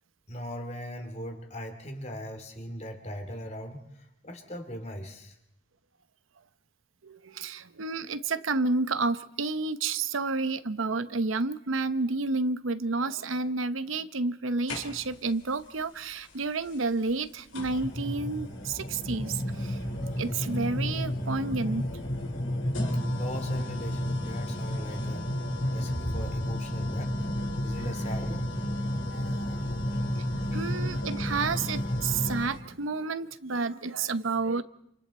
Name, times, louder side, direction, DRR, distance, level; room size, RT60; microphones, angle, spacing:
voice 1, 0.3-5.4 23.1-25.3 25.7-27.1 27.6-28.4 29.5-29.6, equal, 35° left, 2.9 m, -39 dB
voice 2, 7.4-19.3 20.2-21.8 29.1-29.3 30.5-34.6, right 3 dB, 85° right, 0.9 m, -30 dB
sound 1, 14.7-15.3 16.7-16.8 17.5-32.5, equal, 85° left, 4.8 m, -31 dB
28.5 x 28.0 x 4.3 m
head